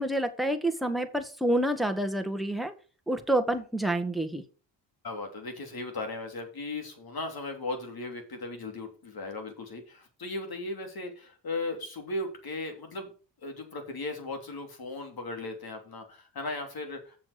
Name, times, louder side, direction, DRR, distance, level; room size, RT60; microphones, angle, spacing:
voice 1, 0.0-2.7 3.1-4.4, right 1 dB, ahead, 6 dB, 1.6 m, -28 dB
voice 2, 5.0-13.1 13.4-17.2, left 2 dB, 50° left, 4 dB, 3.1 m, -37 dB
7.0 x 6.3 x 6.6 m, 0.38 s
supercardioid pair, 60°, 47 cm